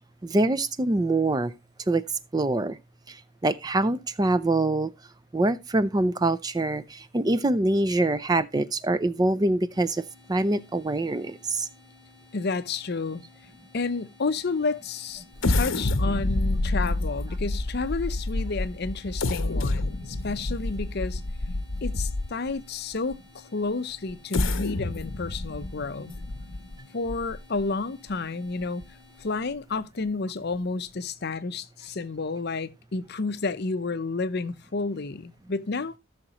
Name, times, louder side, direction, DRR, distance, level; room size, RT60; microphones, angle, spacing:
voice 1, 0.2-1.5 1.9-2.0 2.3-2.8 3.1-4.9 5.3-10.0 10.3-11.7, right 2 dB, 20° right, 0.4 m, -24 dB
sound 1, 9.7-29.4, left 5 dB, 5° left, 3.5 m, -56 dB
voice 2, 12.3-13.3 13.7-21.2 21.8-26.1 26.9-28.8 29.2-35.9, left 3 dB, 50° left, 0.7 m, -31 dB
sound 2, 15.4-22.5 23.1-23.2 24.1-27.6 28.1-28.2 28.6-28.8, left 2 dB, 75° left, 0.9 m, -28 dB
15.0 x 6.5 x 2.9 m
head